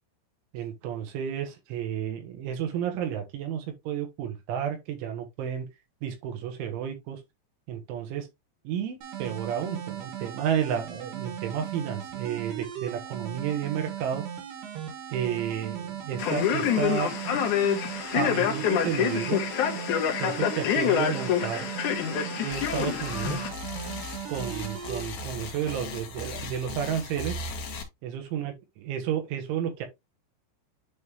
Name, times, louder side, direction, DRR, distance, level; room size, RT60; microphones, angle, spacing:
voice 1, 0.5-5.7 6.0-7.2 7.7-8.3 8.7-14.2 15.1-17.1 18.1-19.4 20.2-21.7 22.4-23.4 24.3-27.4 28.0-28.5 28.9-29.9, right 9 dB, 90° right, 3.8 m, -31 dB
sound 1, 9.0-25.0, right 10 dB, 70° right, 3.4 m, -38 dB
Male speech man speaking, 16.2-23.5, left 9 dB, 85° left, 1.7 m, -27 dB
sound 2, 22.5-27.8, left 3 dB, 55° left, 2.1 m, -38 dB
10.5 x 3.6 x 3.0 m
omnidirectional pair, 5.3 m